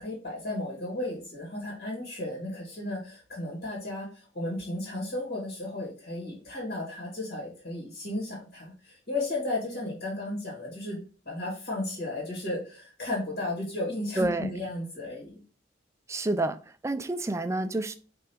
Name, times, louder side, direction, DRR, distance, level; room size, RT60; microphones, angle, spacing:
voice 1, 0.0-15.4, left 2 dB, 55° left, 2.2 m, -34 dB
voice 2, 14.2-14.5 16.1-16.6 16.8-17.9, right 2 dB, 15° right, 0.3 m, -28 dB
5.2 x 3.4 x 3.0 m
head